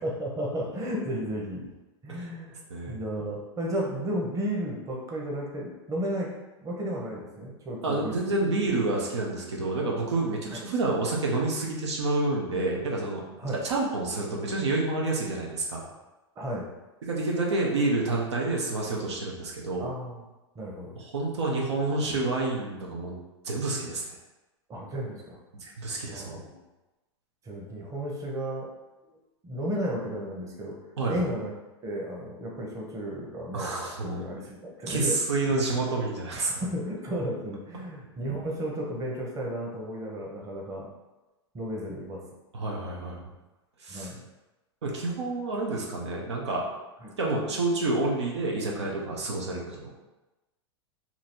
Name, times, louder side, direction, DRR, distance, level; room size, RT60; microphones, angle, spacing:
voice 1, 0.0-1.7 2.0-6.3 6.6-8.1 10.5-10.6 13.4-13.6 16.4-16.7 18.5-18.6 19.8-20.2 20.5-21.0 24.7-25.4 26.1-26.5 27.4-28.7 29.4-30.8 31.1-31.5 31.8-33.7 34.0-35.2 35.5-35.6 36.3-40.9 41.5-42.2 43.9-44.2 47.0-47.1, equal, 20° right, -2 dB, 0.9 m, -33 dB
voice 2, 2.7-3.0 7.8-13.2 13.6-15.8 17.1-19.9 21.0-23.2 23.4-24.0 25.6-26.4 31.0-31.2 33.5-34.2 34.9-36.6 42.5-43.2 43.8-44.1 44.8-46.7 47.2-49.9, right 2 dB, 90° right, -2 dB, 0.9 m, -28 dB
3.0 x 2.8 x 4.3 m, 1.1 s
hypercardioid pair, 115°, 14 cm